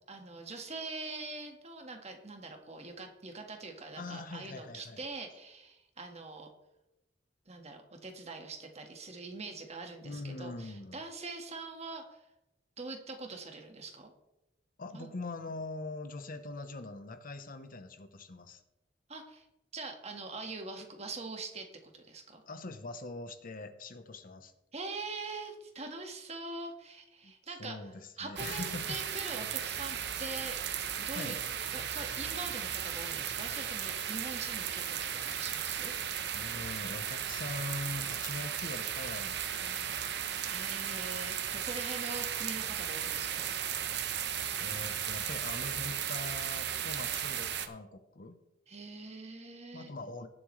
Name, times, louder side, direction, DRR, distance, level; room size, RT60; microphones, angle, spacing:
voice 1, 0.1-6.5 7.5-12.2 12.8-14.1 14.9-15.1 19.1-19.4 19.7-22.4 24.7-27.9 28.2-30.6 31.0-31.4 31.7-35.9 40.5-43.5 48.7-49.9, right 3 dB, 40° right, 4 dB, 1.6 m, -43 dB
voice 2, 3.9-5.1 10.0-11.0 14.8-18.6 22.5-24.5 27.2-27.3 27.6-29.0 31.1-31.4 36.3-40.1 44.6-48.4 49.7-50.3, left 2 dB, 50° left, 9 dB, 1.0 m, -42 dB
sound 1, 28.4-47.7, right 9 dB, 65° right, 0.9 m, -36 dB
18.5 x 7.6 x 3.2 m, 0.89 s
head